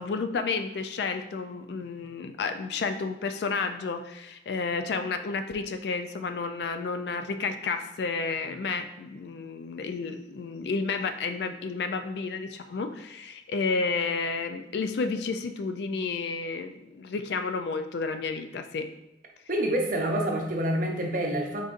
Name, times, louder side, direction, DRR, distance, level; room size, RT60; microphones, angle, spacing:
voice 1, 0.0-18.9, left 4 dB, 65° left, 7 dB, 0.3 m, -31 dB
voice 2, 19.5-21.7, right 1 dB, 45° right, 0 dB, 0.7 m, -27 dB
3.9 x 3.8 x 2.5 m, 0.90 s
head